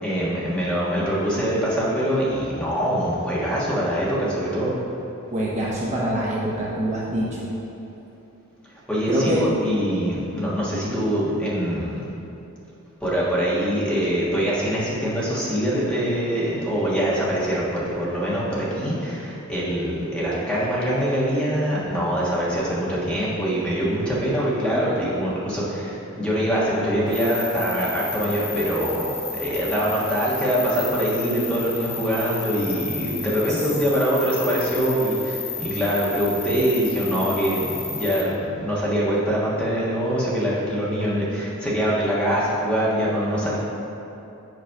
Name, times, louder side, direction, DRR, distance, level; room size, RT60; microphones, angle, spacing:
voice 1, 0.0-4.7 8.9-12.1 13.0-43.6, equal, 5° left, -8 dB, 1.4 m, -24 dB
voice 2, 5.3-7.5 9.1-9.4 33.5-33.6, right 1 dB, 35° right, -6 dB, 0.8 m, -25 dB
sound 1, 27.1-38.2, left 4 dB, 30° left, 1.4 m, -33 dB
7.9 x 3.1 x 5.7 m, 2.9 s
head